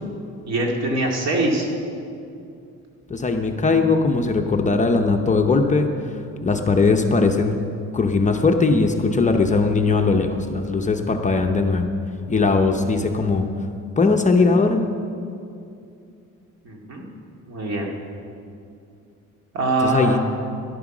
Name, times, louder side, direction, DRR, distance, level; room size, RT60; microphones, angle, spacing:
voice 1, 0.5-1.7 16.6-17.0 17.5-17.9 19.5-20.2, right 2 dB, 60° right, 0 dB, 2.4 m, -23 dB
voice 2, 3.1-5.9 6.4-7.6 7.9-11.9 12.3-13.5 14.0-14.8 19.8-20.2, left 3 dB, 25° left, 4 dB, 0.7 m, -19 dB
13.5 x 11.0 x 6.1 m, 2.5 s
cardioid pair, 145°, 31 cm